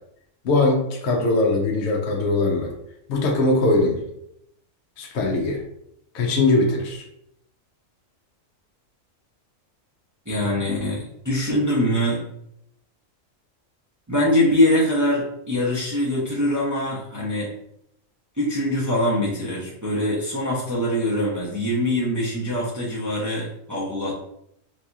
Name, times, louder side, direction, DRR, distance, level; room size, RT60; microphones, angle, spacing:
voice 1, 0.4-2.7 3.1-4.0 5.0-5.6 6.1-7.0, left 2 dB, 65° left, 0 dB, 0.9 m, -21 dB
voice 2, 10.3-12.2 14.1-17.5 18.4-24.1, left 1 dB, 20° right, -6 dB, 0.5 m, -23 dB
4.0 x 2.8 x 2.3 m, 0.76 s
omnidirectional pair, 1.3 m